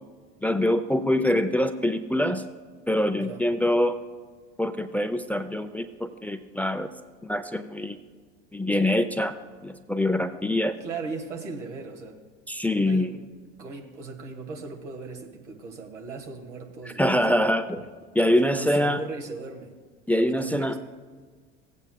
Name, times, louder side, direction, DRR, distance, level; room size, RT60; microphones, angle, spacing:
voice 1, 0.4-2.4 2.9-4.0 4.6-6.9 7.2-8.0 8.5-9.3 9.6-10.7 12.5-13.1 17.0-17.8 18.1-19.0 20.1-20.7, left 1 dB, 5° left, 9 dB, 0.5 m, -24 dB
voice 2, 10.8-12.2 12.8-13.1 13.6-17.4 17.8-17.9 18.4-19.7 20.2-20.8, right 4 dB, 85° right, 1 dB, 1.5 m, -38 dB
17.5 x 8.3 x 2.2 m, 1.5 s
figure-of-eight pair, 70°, 35 cm